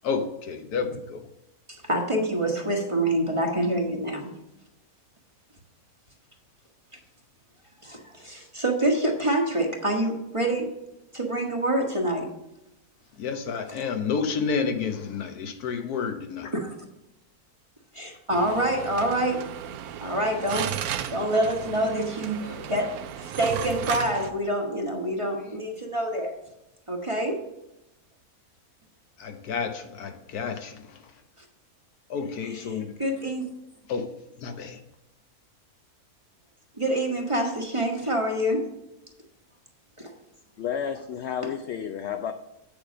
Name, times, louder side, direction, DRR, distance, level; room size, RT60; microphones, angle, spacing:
voice 1, 0.0-1.2 13.2-16.5 18.0-18.2 22.4-22.7 29.2-31.0 32.1-33.0 33.9-34.8, left 5 dB, 80° left, 1.4 m, -30 dB
voice 2, 1.7-4.4 6.9-7.0 7.8-10.7 11.1-12.3 16.5-16.7 17.9-19.4 20.0-20.8 21.1-22.4 22.7-22.9 23.2-26.3 26.9-27.4 31.4-31.5 32.5-33.5 36.8-38.6 40.0-40.1, right 1 dB, 20° right, 1.1 m, -26 dB
sound 1, 18.3-24.3, right 10 dB, 80° right, 1.1 m, -34 dB
voice 3, 40.6-42.3, left 8 dB, 65° left, 0.7 m, -31 dB
8.2 x 6.9 x 5.1 m
omnidirectional pair, 1.6 m